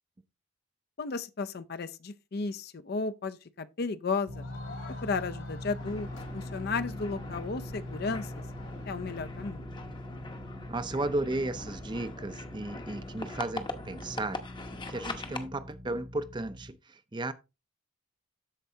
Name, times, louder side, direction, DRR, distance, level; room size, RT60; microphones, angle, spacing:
voice 1, 1.0-4.5 5.0-6.1 6.3-8.4 8.9-9.7, left 4 dB, 50° left, 0.5 m, -34 dB
Crowd, 4.3-9.6, left 3 dB, 70° left, 2.4 m, -51 dB
sound 1, 4.3-16.7, left 1 dB, 70° right, 2.0 m, -43 dB
sound 2, 5.8-15.5, left 2 dB, 25° left, 0.8 m, -42 dB
voice 2, 10.7-14.4 14.9-17.3, right 2 dB, 25° right, 0.5 m, -34 dB
13.0 x 4.6 x 2.7 m
head